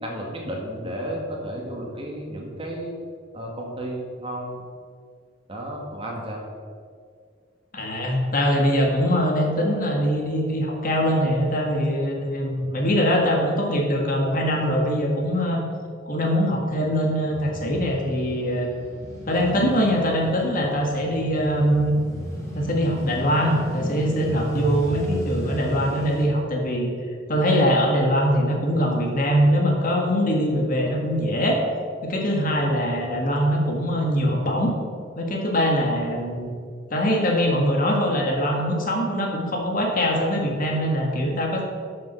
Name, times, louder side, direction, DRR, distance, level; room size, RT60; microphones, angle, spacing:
voice 1, 0.0-2.9 3.3-4.6 5.5-6.4, right 1 dB, 30° right, -1 dB, 2.1 m, -32 dB
voice 2, 7.7-15.6 16.1-18.7 19.3-21.9 22.5-26.9 27.3-31.6 32.0-34.7 35.2-36.5 36.9-41.6, equal, 45° left, 0 dB, 1.9 m, -22 dB
Male speech man speaking / Motorcycle / Idling, 17.3-26.3, equal, 15° left, 3.3 m, -34 dB
12.5 x 6.4 x 5.8 m, 2.1 s
head